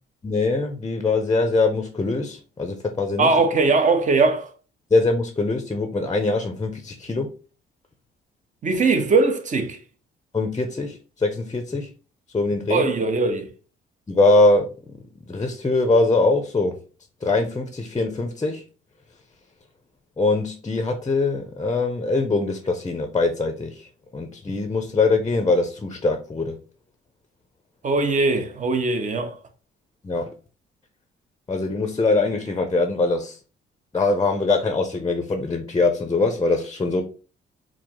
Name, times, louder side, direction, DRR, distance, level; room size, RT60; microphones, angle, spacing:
voice 1, 0.2-3.3 4.9-7.3 10.3-11.9 12.3-12.8 14.1-16.7 17.2-18.6 20.2-23.9 24.1-26.6 30.0-30.3 31.5-33.4 33.9-37.0, left 3 dB, 20° left, 0.6 m, -22 dB
voice 2, 3.2-4.5 8.6-9.8 12.7-13.5 27.8-29.4, right 3 dB, 40° right, 0.8 m, -20 dB
4.8 x 2.0 x 3.6 m
cardioid pair, 90°, 20 cm